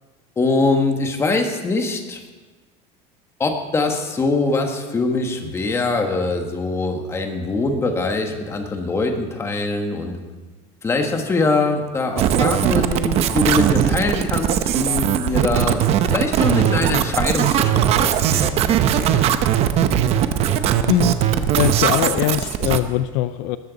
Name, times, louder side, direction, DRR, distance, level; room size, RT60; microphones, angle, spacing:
voice 1, 0.4-2.2 3.4-10.2 10.8-19.1, left 3 dB, 15° left, 4 dB, 1.4 m, -23 dB
sound 1, 12.2-22.8, right 10 dB, 40° right, 0.8 m, -19 dB
voice 2, 21.5-23.6, left 14 dB, 60° left, 12 dB, 0.5 m, -21 dB
20.0 x 13.5 x 4.1 m, 1.3 s
cardioid pair, 165°, 17 cm